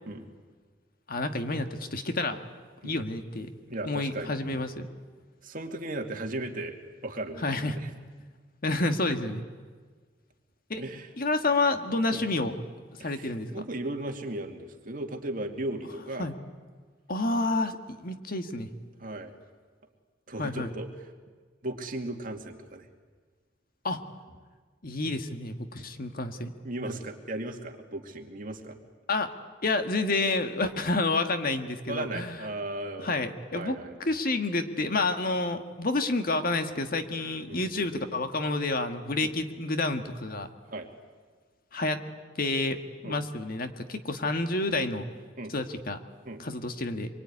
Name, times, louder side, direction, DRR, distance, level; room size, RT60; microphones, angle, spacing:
voice 1, 1.1-2.4 2.8-3.5 3.8-4.9 7.4-7.8 8.6-9.4 10.7-10.8 11.2-12.5 13.0-13.5 16.2-16.4 17.1-18.7 20.4-20.7 23.8-24.0 24.8-26.5 29.1-29.3 29.6-32.3 33.0-40.5 41.7-42.0 42.4-45.0 45.5-46.0 46.4-47.1, left 2 dB, 50° left, 8 dB, 1.7 m, -29 dB
voice 2, 3.7-4.6 5.4-7.9 10.8-11.1 12.1-12.2 13.0-16.3 19.0-19.3 20.3-21.1 21.6-22.9 26.6-28.8 31.9-33.2 33.5-34.0 37.4-37.9 39.2-39.3 40.7-40.9 43.0-43.2 45.4-45.5 46.2-46.4, right 1 dB, 50° right, 4 dB, 2.5 m, -36 dB
25.5 x 23.5 x 9.8 m, 1.5 s
head